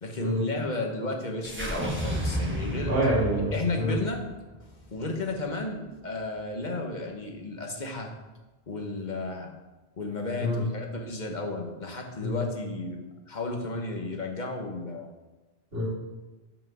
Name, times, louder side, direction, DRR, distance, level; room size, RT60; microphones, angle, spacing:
voice 1, 0.0-2.9 3.5-4.2 4.9-8.1 8.7-9.5 10.0-15.1, left 2 dB, 45° left, 2 dB, 1.2 m, -33 dB
sound 1, 1.4-5.8, equal, 10° right, 1.3 m, -33 dB
voice 2, 2.9-4.0 10.4-10.7 12.2-12.5 15.7-15.9, equal, 65° right, -4 dB, 2.6 m, -27 dB
7.4 x 5.6 x 6.0 m, 1.2 s
omnidirectional pair, 1.1 m